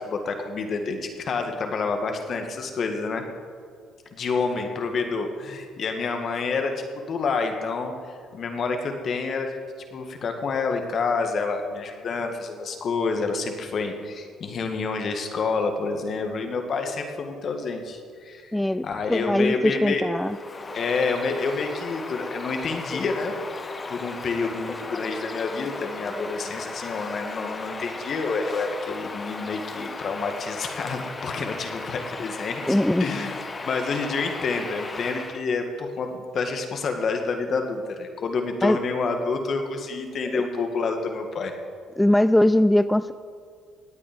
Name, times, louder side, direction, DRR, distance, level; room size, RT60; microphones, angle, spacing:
voice 1, 0.0-3.2 4.1-9.6 9.9-20.0 20.7-23.3 23.9-33.4 33.6-41.5, left 4 dB, 55° left, 5 dB, 1.8 m, -28 dB
voice 2, 18.5-20.4 32.7-33.1 38.6-38.8 40.3-40.4 42.0-43.1, left 1 dB, 5° left, 13 dB, 0.3 m, -21 dB
Bird vocalization bird call bird song, 20.2-35.5, left 3 dB, 30° left, 1.1 m, -36 dB
18.5 x 8.7 x 5.2 m, 2.1 s
supercardioid pair, 70°, 0 cm